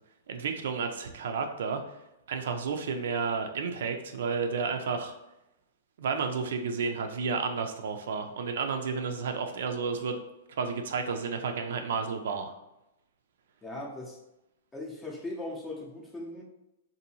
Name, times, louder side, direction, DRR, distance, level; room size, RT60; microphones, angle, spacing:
voice 1, 0.3-2.0 2.3-5.1 6.0-10.2 10.5-12.5, right 5 dB, 70° right, 6 dB, 0.4 m, -31 dB
voice 2, 13.6-14.2 14.7-16.4, left 2 dB, 10° left, -1 dB, 0.6 m, -39 dB
2.6 x 2.6 x 2.8 m, 0.90 s
hypercardioid pair, 140°, 0 cm